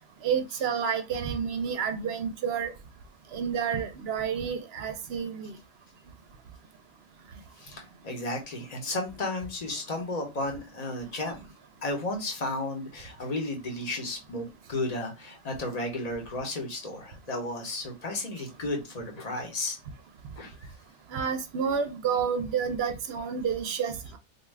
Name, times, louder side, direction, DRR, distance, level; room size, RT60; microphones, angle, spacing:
voice 1, 0.2-2.7 3.3-5.5 21.1-24.2, right 7 dB, 65° right, 0.7 m, -29 dB
voice 2, 7.6-11.4 11.8-19.8 20.4-20.5, left 2 dB, 40° left, 0.8 m, -33 dB
2.5 x 2.3 x 3.2 m
omnidirectional pair, 1.3 m